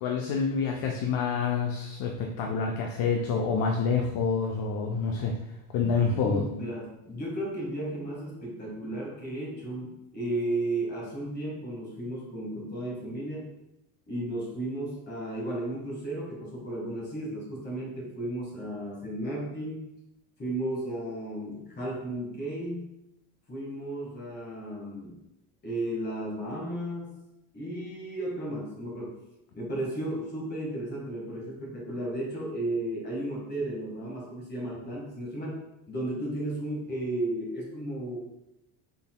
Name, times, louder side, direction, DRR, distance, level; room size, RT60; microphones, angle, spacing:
voice 1, 0.0-5.4 5.7-6.4, left 5 dB, 55° left, 1 dB, 0.5 m, -27 dB
voice 2, 5.9-13.5 14.1-19.9 20.4-22.9 23.5-25.2 25.6-27.2 27.5-29.2 29.5-35.6 35.9-38.2, right 1 dB, 20° left, -3 dB, 1.4 m, -34 dB
3.9 x 3.8 x 2.2 m, 0.87 s
cardioid pair, 125°, 45 cm